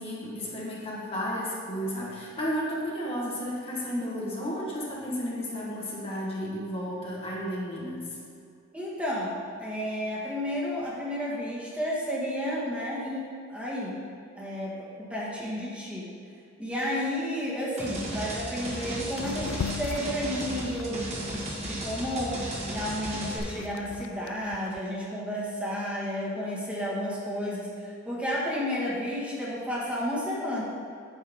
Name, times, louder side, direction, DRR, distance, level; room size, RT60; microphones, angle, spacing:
voice 1, 0.0-8.1, equal, 30° left, -5 dB, 1.3 m, -33 dB
voice 2, 8.7-14.0 14.3-16.1 16.6-30.6, equal, 5° right, -6 dB, 1.5 m, -32 dB
sound 1, 17.8-23.4, right 1 dB, 35° right, 1.5 m, -35 dB
sound 2, 18.1-18.2 18.6-18.8 19.1-21.8 22.3-24.8, left 7 dB, 70° left, 0.3 m, -39 dB
9.1 x 7.7 x 3.6 m, 2.4 s
head